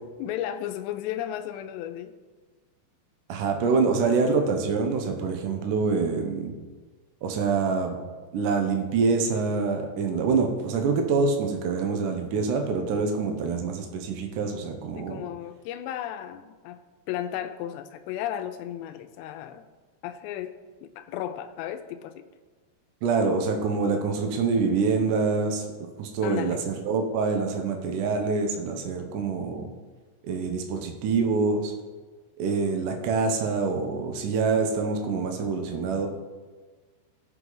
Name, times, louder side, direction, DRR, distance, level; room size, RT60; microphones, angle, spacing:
voice 1, 0.2-2.1 15.0-19.6 20.0-22.3 26.2-26.6, left 11 dB, 80° left, 8 dB, 2.8 m, -34 dB
voice 2, 3.3-6.5 7.2-8.0 8.3-15.2 23.0-25.6 26.0-29.7 30.2-31.7 32.4-36.1, right 4 dB, 85° right, 4 dB, 1.8 m, -25 dB
17.5 x 6.3 x 3.9 m, 1.3 s
omnidirectional pair, 5.2 m